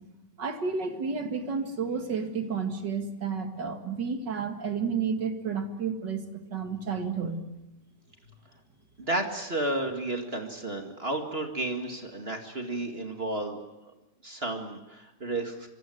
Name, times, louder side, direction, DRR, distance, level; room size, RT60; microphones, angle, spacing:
voice 1, 0.4-7.4, right 5 dB, 85° right, 6 dB, 2.7 m, -31 dB
voice 2, 9.0-13.6 14.2-15.7, right 2 dB, 35° right, 4 dB, 2.3 m, -32 dB
25.0 x 24.5 x 7.9 m, 1.0 s
omnidirectional pair, 1.8 m